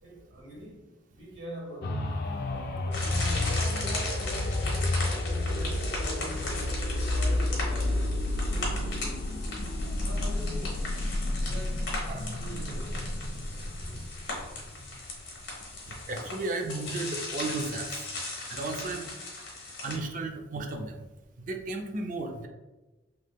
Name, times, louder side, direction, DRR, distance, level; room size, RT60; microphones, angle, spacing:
voice 1, 0.0-0.8 1.1-2.1 2.8-9.3 10.0-10.9 11.4-11.9 12.4-13.2, right 1 dB, 75° right, 1.3 m, -44 dB
sound 1, 1.8-15.5 16.0-16.1, left 1 dB, 55° left, 0.3 m, -31 dB
sound 2, 2.9-20.0, left 2 dB, 75° left, 1.1 m, -38 dB
voice 2, 16.1-17.9 18.5-19.1 19.8-20.9 21.5-22.5, right 2 dB, 45° right, 0.4 m, -34 dB
3.4 x 3.0 x 2.3 m
head